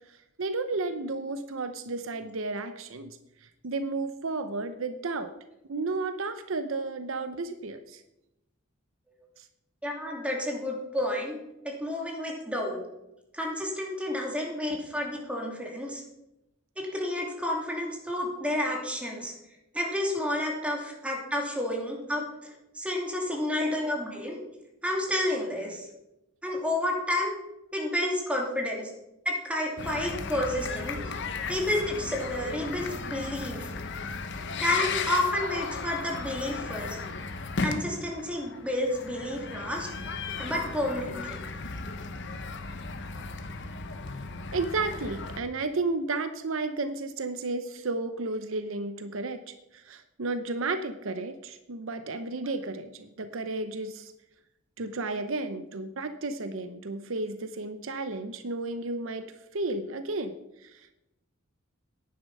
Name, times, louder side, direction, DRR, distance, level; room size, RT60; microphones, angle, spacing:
voice 1, 0.1-5.3 5.7-8.0 9.4-9.5 44.5-54.1 54.8-61.0, right 3 dB, 70° right, 10 dB, 0.7 m, -33 dB
voice 2, 9.8-11.4 11.6-12.8 13.3-16.0 16.8-19.3 19.7-24.4 24.8-25.8 26.4-27.3 27.7-28.9 29.2-31.0 31.5-33.7 34.6-37.0 37.6-39.9 40.4-41.4, left 1 dB, 5° right, -1 dB, 2.9 m, -30 dB
sound 1, 29.8-45.4, left 4 dB, 60° left, 1.1 m, -35 dB
10.5 x 9.6 x 5.5 m, 0.90 s
head